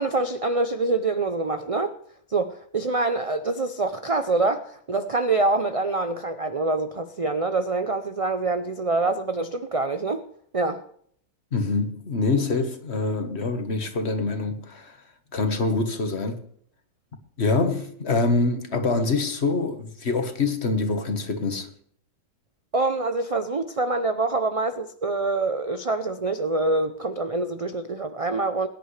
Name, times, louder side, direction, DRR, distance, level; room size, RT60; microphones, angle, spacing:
voice 1, 0.0-1.9 2.3-10.2 10.5-10.8 22.7-28.7, right 3 dB, 60° right, 0.3 m, -25 dB
voice 2, 11.5-15.0 15.3-16.4 17.4-21.7, left 3 dB, 45° left, 1.6 m, -25 dB
22.0 x 10.5 x 3.3 m
omnidirectional pair, 1.6 m